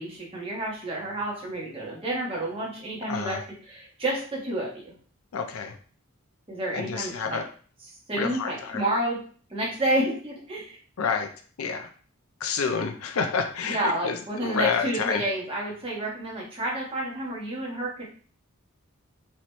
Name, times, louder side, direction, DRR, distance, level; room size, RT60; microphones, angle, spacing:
voice 1, 0.0-4.9 6.5-7.4 8.1-9.2 9.5-10.8 13.6-18.0, right 1 dB, 25° right, -4 dB, 1.4 m, -30 dB
voice 2, 3.1-3.4 5.3-5.7 6.7-7.5 8.1-8.8 11.0-11.3 11.6-11.9 12.4-15.2, left 5 dB, 80° left, 5 dB, 0.5 m, -29 dB
4.2 x 3.0 x 3.0 m, 0.43 s
head